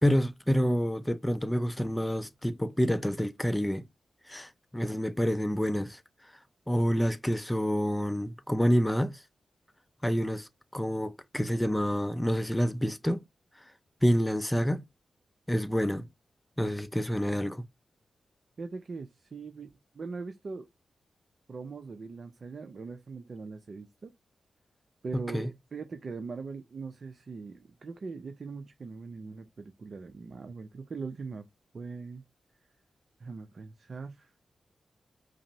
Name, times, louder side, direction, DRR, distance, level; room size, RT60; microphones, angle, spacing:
voice 1, 0.0-3.8 4.3-6.0 6.7-9.2 10.0-13.2 14.0-14.8 15.5-16.1 16.6-17.6 25.3-25.5, equal, 10° left, 0.5 m, -28 dB
voice 2, 18.6-19.7 19.9-20.7 21.5-24.1 25.0-31.5 31.7-32.2 33.2-34.3, right 4 dB, 60° right, 0.5 m, -41 dB
5.0 x 2.0 x 2.6 m
cardioid pair, 50°, 0 cm